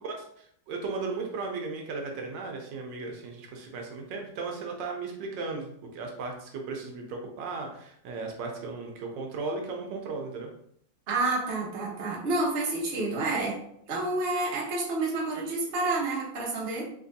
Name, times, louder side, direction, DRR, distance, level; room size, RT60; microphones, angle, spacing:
voice 1, 0.0-10.5, right 3 dB, 80° right, 2 dB, 1.3 m, -36 dB
voice 2, 11.1-13.6 13.9-16.8, right 2 dB, 45° right, -3 dB, 0.8 m, -29 dB
3.4 x 3.2 x 2.6 m, 0.69 s
omnidirectional pair, 2.0 m